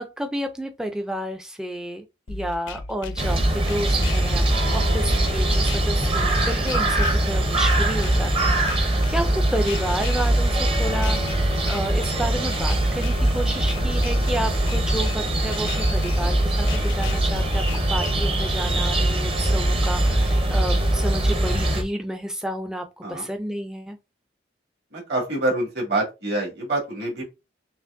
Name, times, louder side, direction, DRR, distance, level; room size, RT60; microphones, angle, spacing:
voice 1, 0.0-24.0, right 1 dB, 5° right, 0.3 m, -31 dB
sound 1, 2.3-18.3, left 2 dB, 90° left, 0.6 m, -35 dB
sound 2, 3.2-21.8, right 1 dB, 30° right, 0.7 m, -22 dB
voice 2, 24.9-27.2, right 2 dB, 60° right, 2.2 m, -26 dB
6.0 x 2.5 x 2.5 m
head